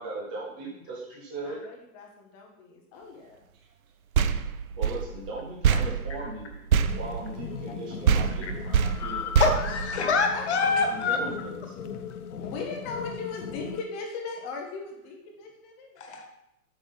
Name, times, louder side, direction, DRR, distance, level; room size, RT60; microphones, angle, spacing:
voice 1, 0.0-1.6 4.8-6.6 6.9-9.5 10.8-12.0, right 2 dB, 5° right, -4 dB, 0.5 m, -38 dB
voice 2, 1.4-3.4 10.3-10.4 12.4-16.2, left 4 dB, 15° left, 1 dB, 0.9 m, -38 dB
sound 1, 4.1-7.8 8.1-10.5, right 7 dB, 70° right, 0.8 m, -26 dB
sound 2, 6.9-13.8, left 7 dB, 90° left, 0.9 m, -38 dB
voice 3, 9.4-11.2 16.0-16.3, left 4 dB, 50° left, 4 dB, 1.8 m, -25 dB
8.8 x 6.1 x 5.5 m, 0.82 s
hypercardioid pair, 165°, 43 cm